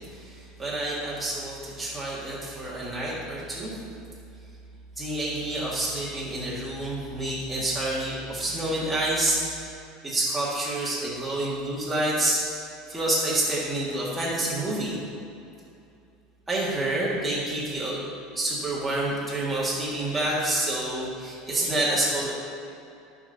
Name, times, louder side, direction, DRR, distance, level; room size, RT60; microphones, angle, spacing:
voice 1, 0.1-3.8 5.0-9.7 10.0-12.5 12.9-15.0 16.5-18.0 18.3-22.3, right 1 dB, 5° right, -8 dB, 1.9 m, -28 dB
12.0 x 5.2 x 4.0 m, 2.6 s
supercardioid pair, 135°, 0 cm